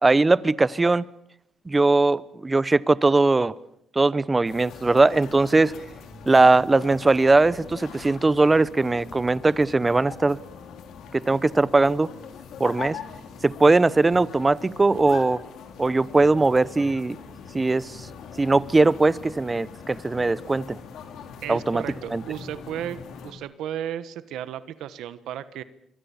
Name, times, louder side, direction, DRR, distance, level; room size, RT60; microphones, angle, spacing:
voice 1, 0.0-1.1 1.7-3.5 3.9-5.7 6.3-10.4 11.1-12.1 12.6-13.0 13.4-15.4 15.8-17.2 17.5-18.0 18.4-20.8 21.5-21.8 22.1-22.2, right 3 dB, 20° right, 0.9 m, -20 dB
sound 1, 4.5-23.3, left 6 dB, 75° left, 4.1 m, -42 dB
voice 2, 21.4-23.0 23.2-25.6, right 10 dB, 85° right, 1.3 m, -34 dB
26.5 x 23.5 x 7.2 m
cardioid pair, 90°, 0 cm